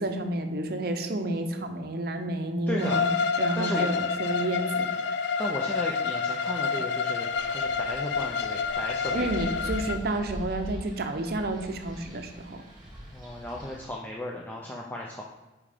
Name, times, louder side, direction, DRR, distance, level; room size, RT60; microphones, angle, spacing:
voice 1, 0.0-3.1 3.4-4.9 9.1-12.6, right 1 dB, 55° right, 6 dB, 0.6 m, -30 dB
voice 2, 2.7-3.1 3.5-3.9 5.4-9.6 13.1-15.2, left 1 dB, 10° left, -1 dB, 0.5 m, -35 dB
Bowed string instrument, 2.8-10.0, left 5 dB, 70° left, 0.4 m, -28 dB
Wind, 7.3-13.9, equal, 25° right, 1.8 m, -42 dB
5.3 x 4.8 x 5.0 m, 1.1 s
head